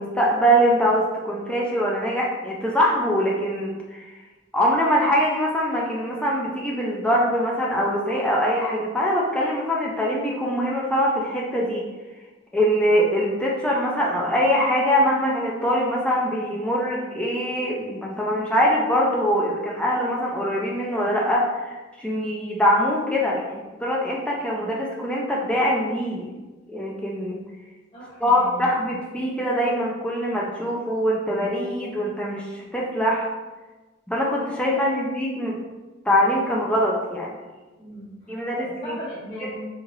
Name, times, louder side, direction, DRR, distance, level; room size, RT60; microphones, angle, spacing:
voice 1, 0.0-4.0 4.5-11.8 12.5-26.4 26.7-27.4 28.2-32.5 32.7-33.3 34.1-35.6 36.1-37.3 38.3-38.9, equal, 5° left, -4 dB, 0.3 m, -23 dB
voice 2, 27.9-28.7 34.7-34.8 37.8-39.6, equal, 30° left, -7 dB, 1.1 m, -38 dB
3.0 x 2.8 x 2.4 m, 1.2 s
head